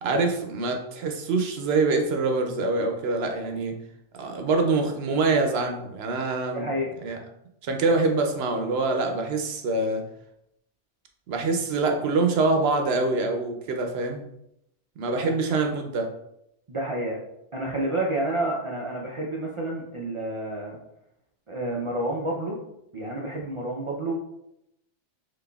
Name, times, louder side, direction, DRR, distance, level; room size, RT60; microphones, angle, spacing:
voice 1, 0.0-3.7 4.1-6.6 7.0-7.2 7.6-10.0 11.3-14.2 15.0-16.1, right 3 dB, 65° right, 4 dB, 0.8 m, -25 dB
voice 2, 6.5-6.9 15.1-15.3 16.7-17.2 17.5-20.8 21.5-22.6 22.9-24.1, right 1 dB, 50° right, -2 dB, 0.3 m, -29 dB
4.0 x 3.1 x 2.3 m, 0.80 s
omnidirectional pair, 1.2 m